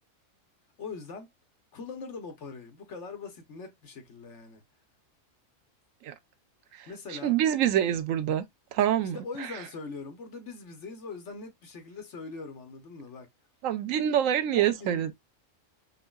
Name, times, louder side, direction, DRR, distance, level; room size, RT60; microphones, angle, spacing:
voice 1, 0.8-1.3 1.7-4.6 6.9-7.4 9.0-13.3 14.5-15.1, left 4 dB, 65° left, 1.2 m, -41 dB
voice 2, 7.2-8.4 8.7-9.2 13.6-15.1, right 10 dB, 80° right, 1.0 m, -25 dB
5.4 x 2.1 x 2.3 m
omnidirectional pair, 1.4 m